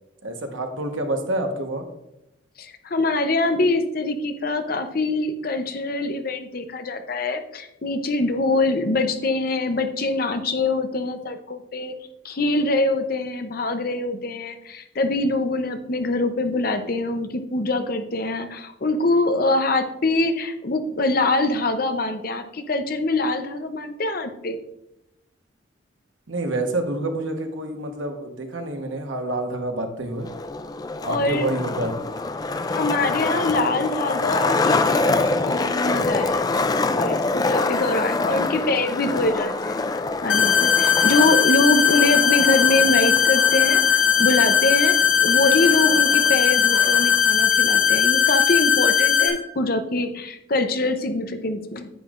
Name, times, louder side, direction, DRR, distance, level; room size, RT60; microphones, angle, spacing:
voice 1, 0.2-1.8 26.3-30.3 31.0-31.9, right 2 dB, 80° right, 4 dB, 1.2 m, -27 dB
voice 2, 2.6-11.9 12.2-24.6 31.0-31.5 32.7-39.8 40.2-51.9, left 2 dB, 50° left, 8 dB, 0.7 m, -24 dB
Skateboard, 30.2-47.2, left 3 dB, 20° left, 0.3 m, -26 dB
sound 1, 40.3-49.3, left 8 dB, 75° left, 1.4 m, -18 dB
9.8 x 8.2 x 2.5 m, 0.88 s
head